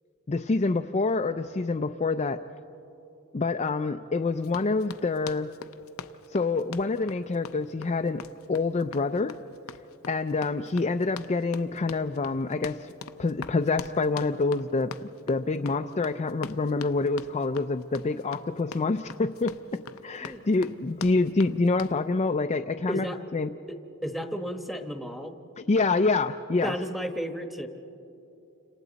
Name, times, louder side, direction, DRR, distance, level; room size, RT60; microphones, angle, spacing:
voice 1, 0.3-2.4 3.3-5.5 6.3-9.4 10.1-12.9 13.2-23.0 23.3-23.5 25.6-26.7, left 3 dB, 30° left, 6 dB, 0.4 m, -27 dB
Run, 4.4-22.0, left 6 dB, 80° left, 0.6 m, -44 dB
voice 2, 22.9-23.2 23.7-23.8 24.0-25.3 26.6-27.7, equal, ahead, 5 dB, 1.1 m, -33 dB
30.0 x 27.0 x 4.0 m, 2.9 s
head